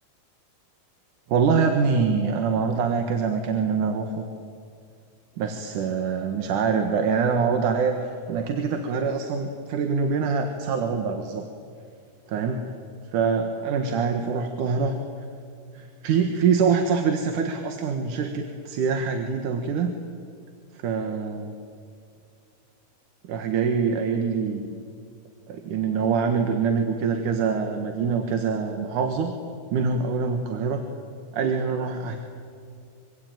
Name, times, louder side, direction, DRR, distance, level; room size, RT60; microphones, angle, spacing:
voice 1, 1.3-4.3 5.4-11.4 12.3-12.7 13.1-15.0 15.7-19.9 20.7-21.6 23.3-24.7 25.5-29.3 29.7-30.8 31.3-32.2, right 5 dB, 65° right, 5 dB, 2.9 m, -24 dB
25.5 x 25.0 x 9.2 m, 2.4 s
omnidirectional pair, 4.1 m